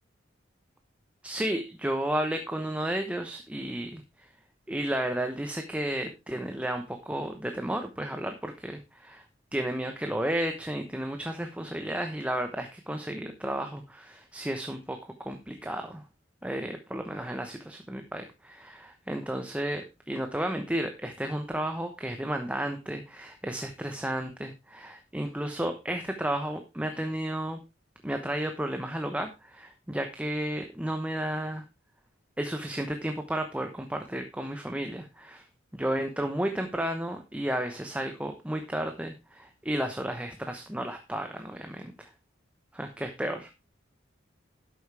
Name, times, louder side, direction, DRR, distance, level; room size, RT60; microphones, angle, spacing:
voice 1, 1.2-4.3 4.7-9.3 9.5-16.0 16.4-27.6 28.0-31.6 32.4-35.4 35.7-42.1 42.7-43.5, right 1 dB, 5° right, 6 dB, 0.9 m, -33 dB
11.5 x 8.3 x 3.3 m, 0.25 s
head